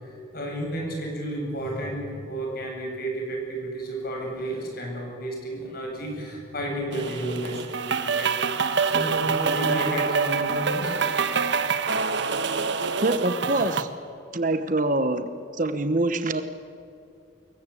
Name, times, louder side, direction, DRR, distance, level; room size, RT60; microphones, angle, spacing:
voice 1, 0.0-11.5, right 1 dB, 50° left, 1 dB, 7.8 m, -32 dB
sound 1, 6.9-13.8, right 5 dB, 60° right, 1.3 m, -26 dB
voice 2, 13.0-13.9 14.3-15.3 15.6-16.4, right 2 dB, 40° right, 9 dB, 1.1 m, -24 dB
26.5 x 22.0 x 8.6 m, 2.5 s
head